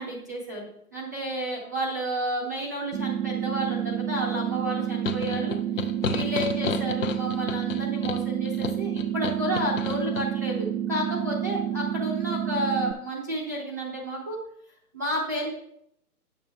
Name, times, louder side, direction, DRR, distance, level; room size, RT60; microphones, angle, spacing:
voice 1, 0.0-5.6 6.0-14.4 14.9-15.5, equal, 10° right, -3 dB, 0.6 m, -31 dB
sound 1, 2.9-12.9, right 10 dB, 75° right, 0.9 m, -29 dB
sound 2, 5.0-10.3, left 6 dB, 55° left, 0.8 m, -33 dB
9.1 x 6.8 x 3.4 m, 0.73 s
figure-of-eight pair, 145°, 47 cm